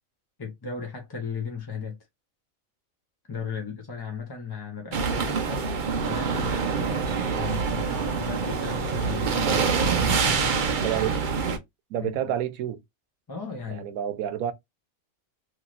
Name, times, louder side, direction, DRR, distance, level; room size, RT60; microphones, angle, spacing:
voice 1, 0.4-2.0 3.3-5.7 6.1-11.0 11.9-12.1 13.3-13.9, left 5 dB, 25° left, 0.5 m, -36 dB
sound 1, 4.9-11.6, right 5 dB, 50° right, 0.6 m, -26 dB
voice 2, 10.8-11.2 11.9-12.8 13.7-14.5, right 11 dB, 90° right, 1.1 m, -29 dB
3.1 x 2.9 x 2.4 m
omnidirectional pair, 1.4 m